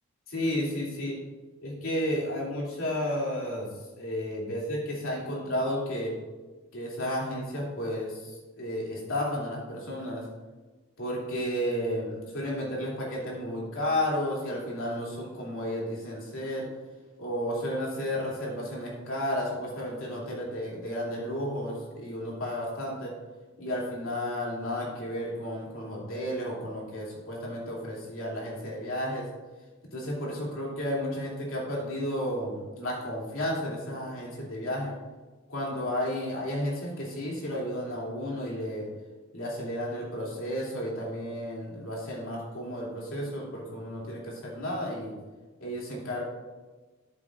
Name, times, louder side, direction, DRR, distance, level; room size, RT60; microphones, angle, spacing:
voice 1, 0.3-1.2 1.6-3.7 4.0-6.1 6.7-10.2 11.0-16.7 17.2-23.1 23.6-29.3 29.9-34.9 35.5-38.9 39.3-45.1 45.6-46.2, equal, 80° left, -4 dB, 2.8 m, -32 dB
13.0 x 7.5 x 2.5 m, 1.3 s
head